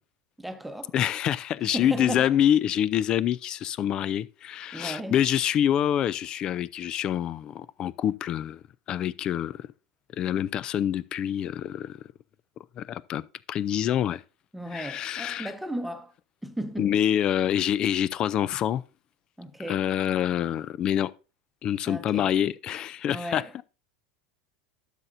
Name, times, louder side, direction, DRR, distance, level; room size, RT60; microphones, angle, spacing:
voice 1, 0.4-0.9 1.7-2.4 4.7-5.2 14.5-16.1 16.4-16.9 19.4-19.9 21.9-22.3 23.1-23.5, right 1 dB, 5° right, 1.0 m, -35 dB
voice 2, 0.9-8.6 8.9-9.7 10.2-12.0 12.8-13.2 13.5-14.2 14.7-15.5 16.8-18.8 19.7-21.1 21.6-23.6, left 10 dB, 40° left, 0.4 m, -26 dB
12.0 x 6.6 x 2.6 m
hypercardioid pair, 85°, 2 cm